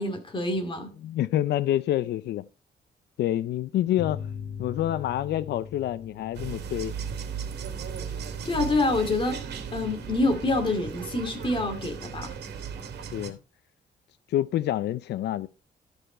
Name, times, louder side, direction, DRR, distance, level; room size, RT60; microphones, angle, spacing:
voice 1, 0.0-0.9 8.4-9.4 9.7-12.3, left 2 dB, 30° left, 2.4 m, -26 dB
voice 2, 1.0-2.4 3.2-4.2 4.6-6.9 13.1-13.4 14.3-15.5, left 13 dB, 80° left, 0.4 m, -27 dB
sound 1, 4.0-9.1, left 7 dB, 55° left, 7.6 m, -41 dB
sound 2, 6.3-13.3, right 7 dB, 75° right, 2.3 m, -36 dB
12.5 x 6.6 x 4.4 m
cardioid pair, 155°, 17 cm